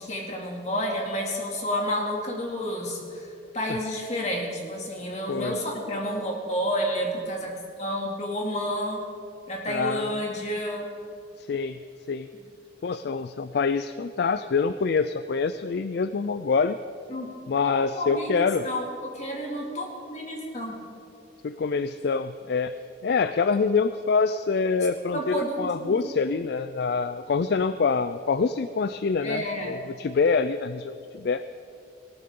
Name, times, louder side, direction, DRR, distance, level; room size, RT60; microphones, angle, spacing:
voice 1, 0.0-9.1 9.5-10.9 17.1-17.3 17.6-18.3 18.6-20.8 25.1-26.1 29.2-29.8, equal, 35° left, 0 dB, 2.4 m, -30 dB
voice 2, 9.7-10.3 11.4-11.8 12.1-12.3 12.8-16.8 17.5-18.6 21.4-22.7 23.0-31.4, left 5 dB, 55° left, 12 dB, 0.4 m, -26 dB
19.0 x 17.0 x 3.7 m, 2.5 s
head